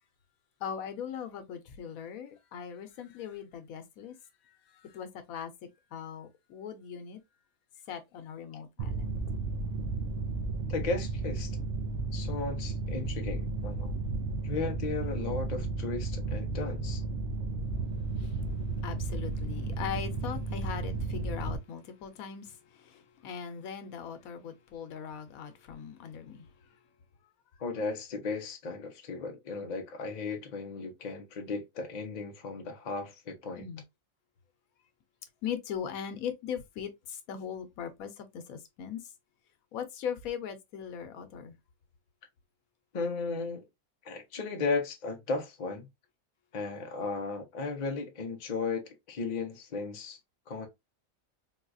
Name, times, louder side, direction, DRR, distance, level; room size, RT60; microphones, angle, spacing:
voice 1, 0.6-4.1 4.9-5.5 5.9-7.2 7.9-9.2 18.8-22.4 23.2-26.5 33.6-33.8 35.4-39.0 39.7-41.5, left 8 dB, 90° left, 1.1 m, -39 dB
Mechanical fan, 8.8-21.6, right 3 dB, 65° right, 0.9 m, -33 dB
voice 2, 10.7-11.6 12.1-13.9 14.4-17.0 27.6-33.7 42.9-43.6 44.0-45.9 46.5-50.2 50.5-50.7, left 4 dB, 40° left, 0.7 m, -35 dB
3.9 x 2.3 x 2.5 m
omnidirectional pair, 1.5 m